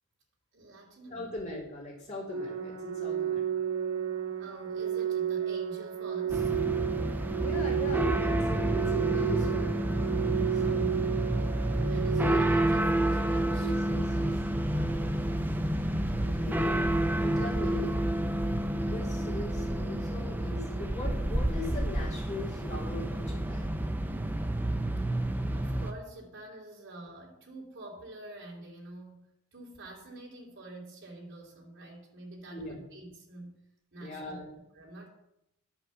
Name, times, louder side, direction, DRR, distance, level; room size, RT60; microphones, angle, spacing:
voice 1, 0.5-1.4 4.4-6.5 11.8-13.7 25.5-33.5 33.9-34.4 34.7-35.1, right 2 dB, 55° right, -3 dB, 3.1 m, -46 dB
voice 2, 1.1-3.5 7.4-9.8 10.5-11.0 13.5-15.1 16.1-16.8 17.2-18.0 18.8-23.7 32.5-32.8 34.0-34.5, left 1 dB, 35° left, -5 dB, 3.0 m, -40 dB
Organ, 2.3-13.3, right 9 dB, 80° right, 1.2 m, -32 dB
sound 1, 6.3-25.9, right 1 dB, 10° right, 0.5 m, -29 dB
11.5 x 5.8 x 7.0 m, 0.84 s
head